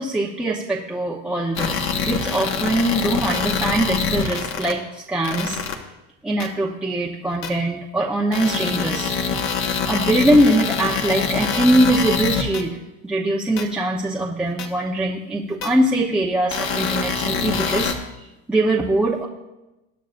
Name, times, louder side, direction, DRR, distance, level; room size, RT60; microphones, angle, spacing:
voice 1, 0.0-1.8 2.0-5.6 6.2-9.1 9.9-12.7 13.0-17.9 18.5-19.3, right 1 dB, 5° right, -3 dB, 0.9 m, -22 dB
sound 1, 1.6-4.7 5.2-5.7 6.4-6.5 7.4-7.5 8.3-12.6 13.6-13.7 14.6-14.7 15.6-15.7 16.5-17.9, left 6 dB, 35° left, 1.3 m, -24 dB
20.5 x 10.0 x 2.6 m, 0.97 s
cardioid pair, 160°, 36 cm